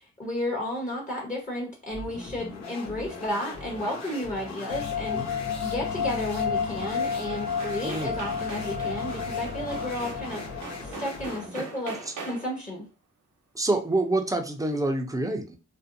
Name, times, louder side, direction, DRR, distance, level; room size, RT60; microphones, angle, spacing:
voice 1, 0.0-10.4 10.8-12.0 12.2-12.9, left 1 dB, 25° left, -3 dB, 1.0 m, -33 dB
sound 1, 1.9-11.6, left 3 dB, 65° left, 0.8 m, -40 dB
sound 2, 3.0-4.6 6.9-7.0 7.3-12.7, right 4 dB, 80° right, 0.8 m, -43 dB
sound 3, 4.7-11.2, left 6 dB, 90° left, 0.5 m, -31 dB
voice 2, 7.8-8.2 11.5-11.6 12.1-12.2 13.5-15.6, right 2 dB, 10° right, 4 dB, 0.6 m, -27 dB
2.5 x 2.1 x 2.6 m, 0.33 s
cardioid pair, 55°, 30 cm